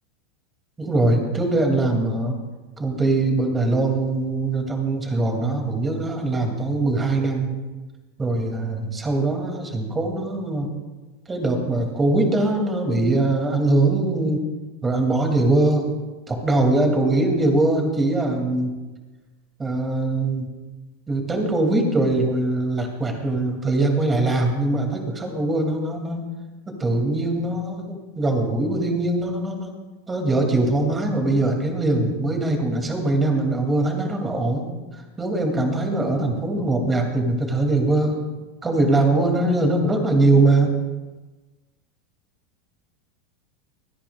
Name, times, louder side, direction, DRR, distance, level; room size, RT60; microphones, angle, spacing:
voice 1, 0.8-2.4 2.8-7.5 8.2-10.7 11.3-14.4 14.8-15.8 16.3-18.7 19.6-20.5 21.1-26.2 26.7-29.7 30.1-34.7 34.9-38.2 38.6-40.7, right 2 dB, 20° right, 3 dB, 2.6 m, -22 dB
25.0 x 10.0 x 2.4 m, 1.2 s
hypercardioid pair, 90°, 0 cm